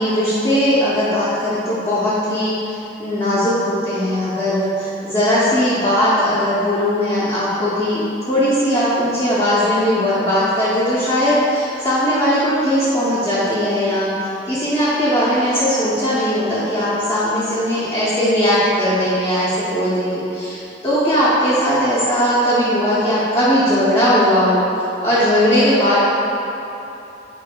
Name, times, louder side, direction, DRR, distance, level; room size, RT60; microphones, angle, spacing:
voice 1, 0.0-26.1, equal, 20° left, -11 dB, 0.6 m, -18 dB
4.1 x 3.0 x 3.6 m, 2.9 s
head